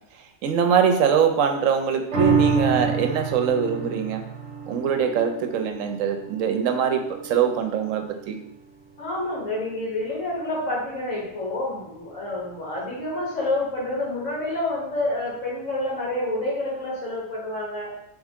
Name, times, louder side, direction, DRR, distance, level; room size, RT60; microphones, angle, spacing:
voice 1, 0.4-4.2 4.7-8.4, right 7 dB, 85° right, 5 dB, 1.0 m, -23 dB
sound 1, 2.1-8.8 9.2-9.3, right 5 dB, 60° right, 1.1 m, -28 dB
voice 2, 9.0-17.9, left 2 dB, 75° left, -5 dB, 1.9 m, -28 dB
3.6 x 3.4 x 3.5 m, 0.77 s
omnidirectional pair, 1.3 m